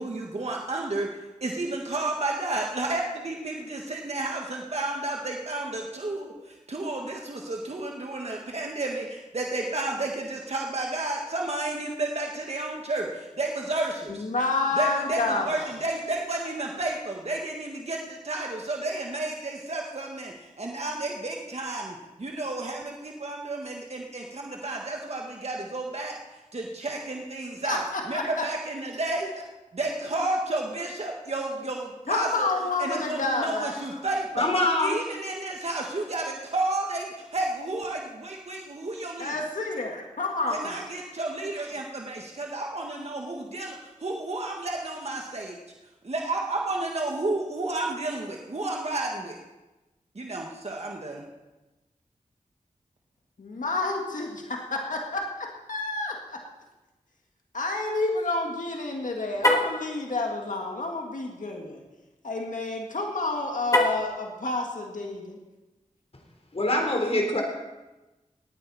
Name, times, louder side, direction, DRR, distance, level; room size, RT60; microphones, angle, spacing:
voice 1, 0.0-14.2 14.8-26.2 26.5-29.5 29.7-32.5 32.8-34.5 34.8-39.4 40.5-45.6 46.0-49.4 50.2-51.2, right 2 dB, 50° right, 0 dB, 1.7 m, -31 dB
voice 2, 14.1-15.6 27.6-28.3 32.1-33.8 39.2-40.8 53.4-56.4 57.5-61.8 62.2-65.4, left 3 dB, 70° left, 1 dB, 1.8 m, -29 dB
voice 3, 34.4-35.1 66.5-67.4, left 1 dB, 50° left, 2 dB, 3.5 m, -24 dB
Car, 59.3-59.8 63.6-64.2, left 1 dB, 25° left, 2.5 m, -23 dB
18.5 x 9.2 x 4.2 m, 1.1 s
cardioid pair, 40°, 14 cm